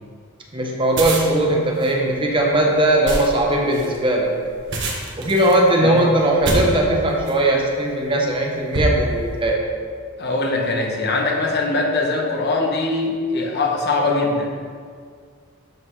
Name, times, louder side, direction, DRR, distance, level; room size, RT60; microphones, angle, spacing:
voice 1, 0.5-4.3 5.2-9.6, right 1 dB, 25° right, 0 dB, 0.8 m, -19 dB
sound 1, 0.8-7.5 8.1-8.3 8.7-9.4, right 2 dB, 55° right, 1.4 m, -28 dB
voice 2, 10.2-14.5, left 3 dB, 50° left, 0 dB, 1.1 m, -22 dB
12.0 x 5.8 x 3.2 m, 2.1 s
head